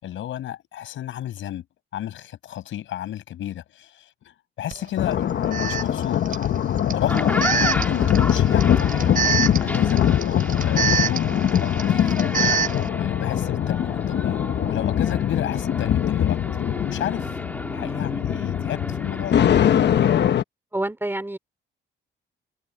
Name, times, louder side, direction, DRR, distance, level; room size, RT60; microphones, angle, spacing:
voice 1, 0.0-1.6 1.9-3.9 4.6-6.2 6.9-10.0 10.6-11.3 11.6-12.2 12.7-16.4 16.8-17.3 17.7-19.4, left 12 dB, 75° left, 6.1 m, -31 dB
Alarm, 4.7-4.8 5.5-12.9, right 6 dB, 45° right, 4.0 m, -27 dB
sound 1, 5.0-20.4, left 10 dB, 60° left, 1.3 m, -22 dB
sound 2, 6.9-20.3, left 1 dB, 10° left, 2.7 m, -33 dB
voice 2, 20.7-21.4, right 1 dB, 10° right, 3.5 m, -27 dB
cardioid pair, 90°, 20 cm